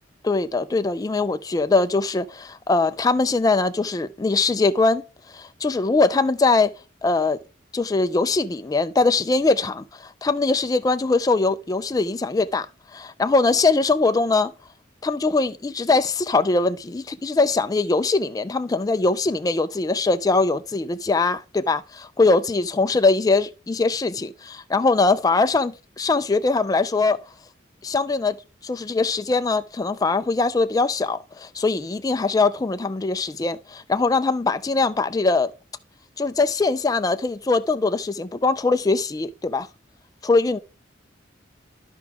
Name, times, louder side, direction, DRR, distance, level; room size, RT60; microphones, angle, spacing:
voice 1, 0.2-5.0 5.3-6.7 7.0-7.4 7.7-12.7 12.9-14.5 15.0-27.2 27.8-28.4 28.6-35.5 36.2-39.7 40.2-40.6, left 3 dB, 20° left, 0.3 m, -22 dB
12.5 x 4.7 x 3.5 m
head